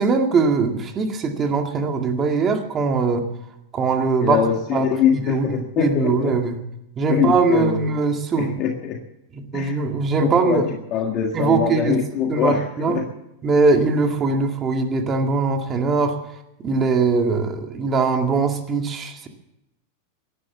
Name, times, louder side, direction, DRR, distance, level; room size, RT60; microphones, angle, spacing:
voice 1, 0.0-3.2 3.7-4.4 4.7-4.9 5.1-5.4 5.8-6.6 7.0-8.6 9.3-10.7 11.3-12.0 12.3-13.0 13.4-16.2 16.6-19.3, right 4 dB, 25° right, 4 dB, 2.1 m, -21 dB
voice 2, 4.2-6.3 7.1-7.9 8.3-9.0 9.5-9.8 10.2-10.6 10.9-13.0, left 8 dB, 35° left, 2 dB, 1.7 m, -23 dB
17.5 x 11.0 x 6.9 m, 0.85 s
supercardioid pair, 145°, 0 cm